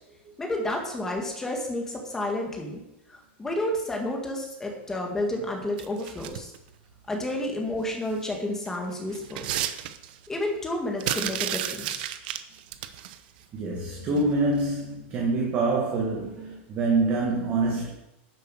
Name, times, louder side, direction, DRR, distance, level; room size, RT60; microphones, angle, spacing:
voice 1, 0.4-2.8 3.1-6.5 7.1-9.5 10.3-12.1, left 1 dB, 5° left, 1 dB, 1.8 m, -30 dB
sound 1, 5.8-6.6 8.1-8.3 8.7-10.3 11.0-13.2 14.2-14.3 14.7-14.8, right 12 dB, 50° right, 0.8 m, -32 dB
voice 2, 13.5-17.9, right 3 dB, 25° right, -1 dB, 1.6 m, -26 dB
10.0 x 7.5 x 6.4 m, 0.88 s
supercardioid pair, 175°, 6 cm